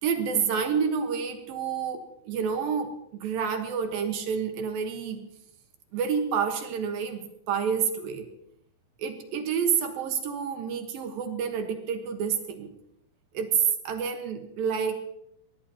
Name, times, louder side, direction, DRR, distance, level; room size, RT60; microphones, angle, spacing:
voice 1, 0.0-5.2 5.9-8.3 9.0-12.7 13.3-13.6 13.8-15.0, right 6 dB, 65° right, 6 dB, 2.8 m, -29 dB
24.0 x 19.0 x 2.9 m, 0.76 s
omnidirectional pair, 4.9 m